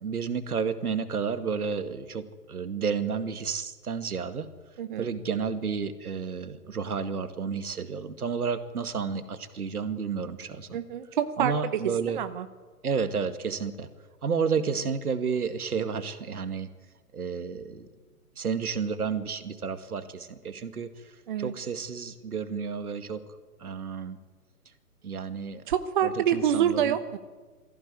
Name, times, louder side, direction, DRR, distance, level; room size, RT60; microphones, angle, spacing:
voice 1, 0.0-4.5 5.0-10.8 11.4-12.2 12.8-13.9 14.2-16.7 17.1-17.9 18.4-21.1 21.4-23.2 23.6-24.2 25.0-25.7 26.0-27.0, right 6 dB, 65° right, 10 dB, 2.3 m, -31 dB
voice 2, 10.7-11.8 12.1-12.5 21.3-21.5 25.7-27.2, right 9 dB, 30° right, 10 dB, 1.0 m, -27 dB
23.0 x 16.0 x 9.8 m, 1.4 s
figure-of-eight pair, 140°, 47 cm